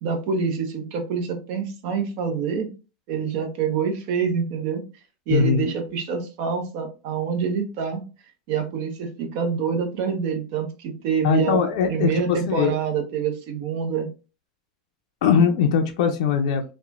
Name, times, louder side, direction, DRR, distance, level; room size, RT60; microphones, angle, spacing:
voice 1, 0.0-2.7 3.1-4.8 5.3-8.0 8.5-11.6 11.9-14.1, right 6 dB, 60° right, 6 dB, 0.7 m, -26 dB
voice 2, 5.3-5.7 11.2-12.7 15.2-16.6, left 7 dB, 75° left, 4 dB, 0.4 m, -21 dB
3.0 x 2.1 x 2.4 m, 0.33 s
supercardioid pair, 120°, 4 cm